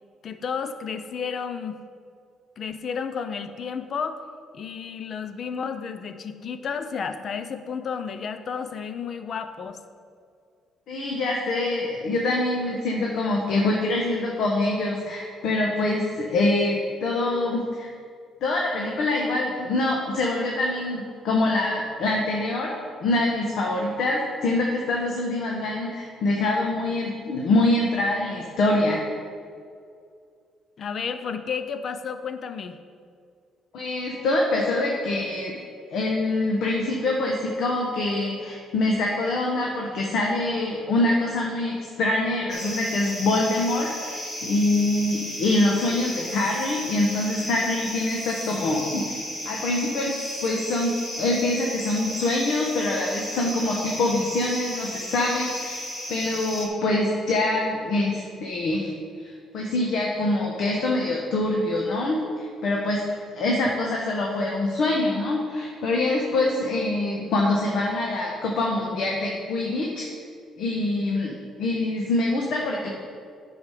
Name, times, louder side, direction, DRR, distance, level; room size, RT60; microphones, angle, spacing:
voice 1, 0.2-1.8 2.6-4.2 4.5-9.8 30.8-32.8, left 6 dB, 45° left, 10 dB, 0.6 m, -32 dB
voice 2, 10.9-17.9 18.4-29.0 33.7-35.5 35.9-49.1 49.4-58.9 59.2-70.1 70.6-73.0, left 2 dB, 70° left, -1 dB, 1.2 m, -25 dB
sound 1, 42.5-56.7, equal, 20° left, 2.1 m, -34 dB
9.8 x 6.3 x 4.9 m, 2.3 s
cardioid pair, 125°, 0 cm